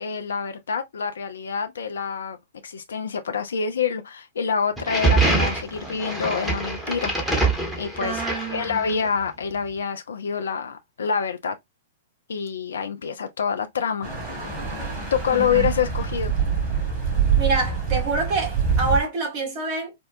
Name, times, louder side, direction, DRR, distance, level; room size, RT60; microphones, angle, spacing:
voice 1, 0.0-2.4 2.6-7.1 7.8-8.2 8.5-11.6 12.3-14.1 15.1-16.3, left 6 dB, 70° left, 0.4 m, -26 dB
sound 1, 4.8-9.1, right 3 dB, 5° right, 1.3 m, -24 dB
voice 2, 8.0-8.8 15.3-15.7 17.4-19.9, right 3 dB, 40° right, 1.6 m, -26 dB
sound 2, 14.0-19.0, right 6 dB, 20° right, 2.3 m, -25 dB
4.4 x 2.2 x 2.7 m
figure-of-eight pair, 110°, 0 cm